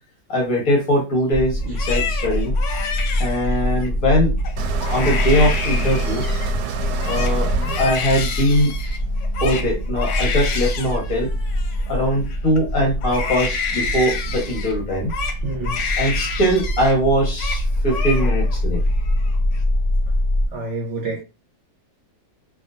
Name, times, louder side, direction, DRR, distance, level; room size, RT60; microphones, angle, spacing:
voice 1, 0.3-2.5 3.2-4.3 4.9-6.2 7.1-7.5 7.8-8.7 9.4-11.3 11.9-15.1 16.0-18.8, equal, 55° left, 1.7 m, -21 dB
sound 1, 1.3-20.5, equal, 15° left, 1.7 m, -24 dB
Crying sobbing, 1.6-3.9 4.4-4.5 4.8-6.5 6.8-12.6 13.0-17.0 17.2-17.6 17.9-18.6 18.9-19.6, left 6 dB, 70° left, 0.7 m, -29 dB
sound 2, 4.6-9.5, right 5 dB, 75° right, 1.1 m, -28 dB
voice 2, 15.4-15.8 20.5-21.2, right 2 dB, 55° right, 1.0 m, -28 dB
3.6 x 2.6 x 2.5 m
omnidirectional pair, 1.8 m